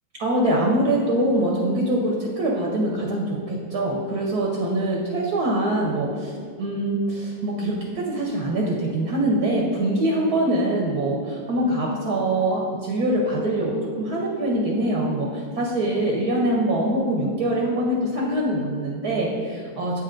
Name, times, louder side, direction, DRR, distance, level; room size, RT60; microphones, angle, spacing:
voice 1, 0.2-20.0, right 1 dB, 65° right, -2 dB, 1.1 m, -24 dB
8.2 x 4.4 x 3.7 m, 2.1 s
omnidirectional pair, 2.2 m